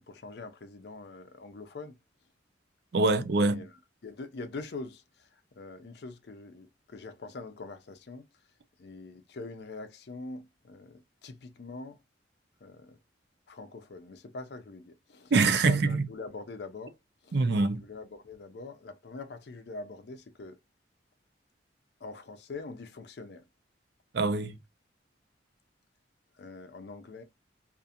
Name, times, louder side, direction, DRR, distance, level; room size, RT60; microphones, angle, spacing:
voice 1, 0.0-1.9 3.4-5.3 5.6-8.3 8.8-12.0 12.6-13.0 13.5-15.3 15.6-17.0 17.2-17.4 17.7-20.6 22.0-23.4 26.3-27.2, left 3 dB, 60° left, 0.5 m, -44 dB
voice 2, 2.9-3.6 15.3-16.1 17.3-17.8 24.1-24.6, right 3 dB, 60° right, 0.4 m, -24 dB
2.5 x 2.5 x 2.7 m
head